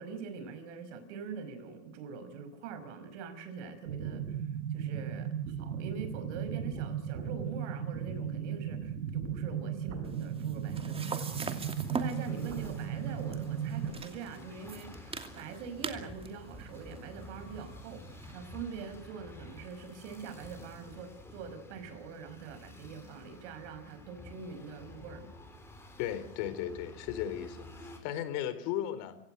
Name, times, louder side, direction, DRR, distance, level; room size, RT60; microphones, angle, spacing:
voice 1, 0.0-4.4 4.7-25.3, right 5 dB, 60° right, 11 dB, 5.4 m, -44 dB
sound 1, 3.9-13.9, right 8 dB, 85° right, 5.4 m, -36 dB
sound 2, 10.0-18.3, right 4 dB, 15° right, 2.6 m, -43 dB
sound 3, 11.3-28.0, left 1 dB, 5° left, 5.2 m, -51 dB
voice 2, 26.0-29.2, left 11 dB, 50° left, 13 dB, 3.9 m, -36 dB
25.5 x 17.0 x 9.0 m, 0.69 s
supercardioid pair, 130°, 39 cm